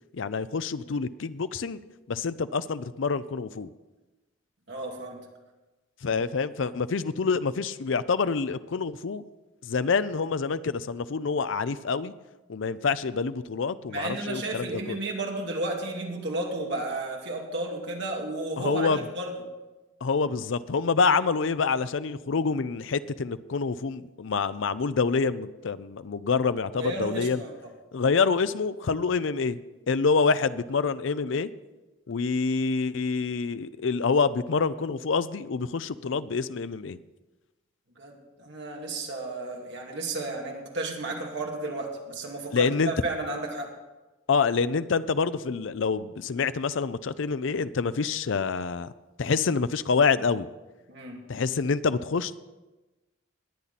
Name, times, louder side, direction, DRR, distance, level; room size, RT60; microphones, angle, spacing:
voice 1, 0.1-1.8 2.1-3.7 6.0-9.2 9.6-12.1 12.5-15.0 18.6-19.0 20.0-27.4 27.9-29.6 29.9-31.5 32.1-37.0 42.5-42.9 44.3-48.9 49.2-50.5 51.3-52.4, left 5 dB, 65° left, 14 dB, 0.5 m, -27 dB
voice 2, 4.7-5.2 13.9-19.3 26.8-27.7 38.0-43.7 50.9-51.2, right 2 dB, 60° right, 0 dB, 2.3 m, -33 dB
21.0 x 8.6 x 4.2 m, 1.1 s
head